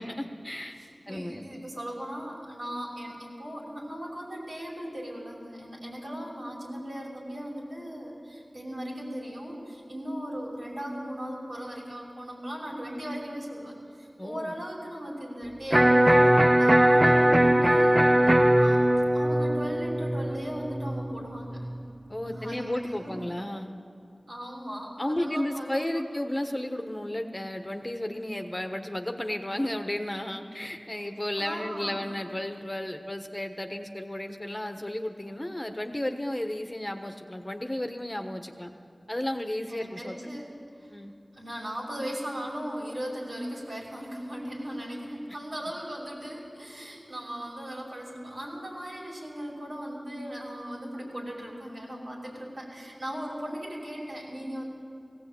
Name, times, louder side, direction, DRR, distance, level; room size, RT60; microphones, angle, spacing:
voice 1, 0.0-0.8 1.1-1.6 14.2-14.5 22.1-23.7 25.0-38.7 39.1-40.2 40.9-41.1, left 1 dB, 25° left, 5 dB, 1.3 m, -33 dB
voice 2, 0.7-18.8 19.1-21.6 22.2-23.2 24.3-26.1 31.4-32.0 39.7-41.0 41.3-54.6, equal, 70° right, -3 dB, 5.7 m, -38 dB
Electric guitar, 15.7-21.8, right 1 dB, 20° right, 0.5 m, -21 dB
18.5 x 16.5 x 8.5 m, 2.3 s
wide cardioid pair, 50°, 0 cm